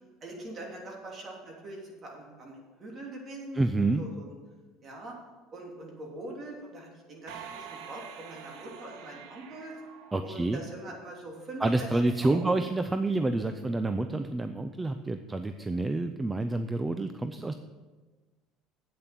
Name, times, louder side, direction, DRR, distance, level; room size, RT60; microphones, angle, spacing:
voice 1, 0.2-3.6 4.0-4.3 4.8-5.1 5.5-9.7 10.2-11.9 12.2-12.5 13.4-13.6, right 2 dB, 40° right, -1 dB, 3.2 m, -43 dB
voice 2, 3.5-4.0 10.1-10.6 11.6-17.5, right 2 dB, 15° right, 9 dB, 0.5 m, -28 dB
sound 1, 7.3-10.9, right 7 dB, 80° right, 1.2 m, -46 dB
8.7 x 8.7 x 6.0 m, 1.3 s
supercardioid pair, 105°, 0 cm